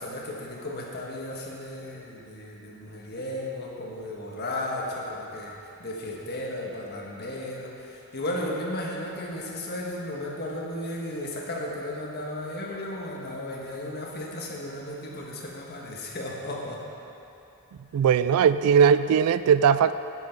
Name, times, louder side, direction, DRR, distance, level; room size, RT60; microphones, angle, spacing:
voice 1, 0.0-16.8, left 1 dB, 45° left, -3 dB, 1.4 m, -34 dB
voice 2, 17.9-19.9, right 7 dB, 75° right, 16 dB, 0.3 m, -19 dB
9.6 x 7.9 x 4.6 m, 2.9 s
head